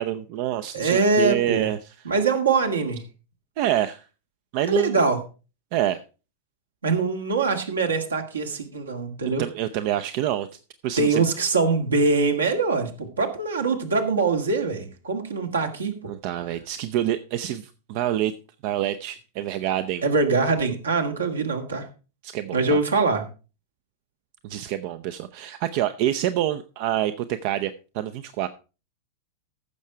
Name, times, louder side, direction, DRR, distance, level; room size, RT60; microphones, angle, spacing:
voice 1, 0.0-2.0 3.6-4.1 4.5-5.0 5.7-6.0 9.4-10.5 10.8-11.2 16.1-18.3 18.6-20.0 22.2-22.8 24.4-28.5, right 12 dB, 45° right, 0.6 m, -27 dB
voice 2, 0.7-1.7 2.1-3.0 4.7-5.2 6.8-9.4 11.0-16.1 20.0-21.9 22.5-23.2, right 4 dB, 75° right, 1.9 m, -23 dB
15.0 x 6.5 x 4.6 m
figure-of-eight pair, 90°, 0 cm